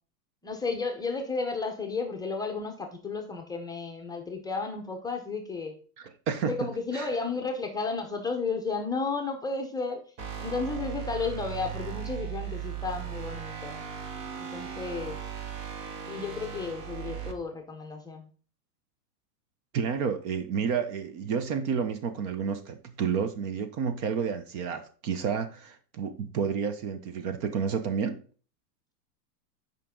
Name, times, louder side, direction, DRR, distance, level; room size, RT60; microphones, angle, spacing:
voice 1, 0.4-5.7 6.4-10.0 10.4-13.8 14.4-15.2 16.1-18.3, left 4 dB, 10° left, 0.8 m, -33 dB
voice 2, 6.0-7.1 19.7-28.2, right 6 dB, 35° right, 0.7 m, -30 dB
sound 1, 10.2-17.3, right 9 dB, 15° right, 0.4 m, -37 dB
8.4 x 5.2 x 3.7 m
hypercardioid pair, 135°, 48 cm